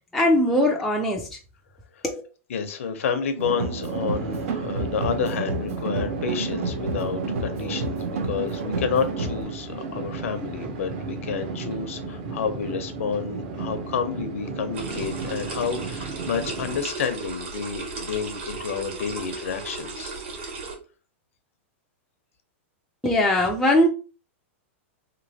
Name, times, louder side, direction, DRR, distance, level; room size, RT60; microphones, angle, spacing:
voice 1, 0.1-1.4 2.0-2.2 23.0-23.9, left 1 dB, ahead, 0.3 m, -20 dB
voice 2, 2.5-20.1, left 6 dB, 85° left, 0.6 m, -30 dB
sound 1, 3.4-9.4, right 3 dB, 80° right, 0.7 m, -30 dB
sound 2, 3.9-16.8, right 4 dB, 40° right, 0.7 m, -34 dB
sound 3, 14.7-20.8, right 4 dB, 60° right, 1.5 m, -35 dB
3.0 x 2.9 x 2.7 m
supercardioid pair, 160°, 7 cm